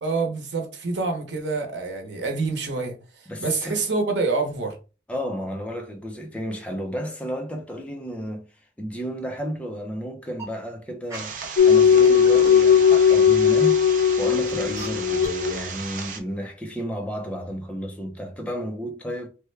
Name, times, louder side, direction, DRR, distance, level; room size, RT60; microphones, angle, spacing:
voice 1, 0.0-2.9 3.4-4.8, right 3 dB, 90° right, 0.8 m, -26 dB
voice 2, 3.3-3.8 5.1-8.5 8.8-13.8 14.2-19.3, equal, 10° left, 0.5 m, -32 dB
sound 1, 10.3-10.4 11.1-11.5 12.0-12.6 13.2-13.3 14.1-14.2 14.8-14.9 15.2-15.3, right 2 dB, 15° right, 0.8 m, -37 dB
sound 2, 11.1-16.2, right 6 dB, 50° right, 0.5 m, -35 dB
sound 3, 11.6-15.7, left 7 dB, 70° left, 0.4 m, -17 dB
3.3 x 2.1 x 3.2 m
head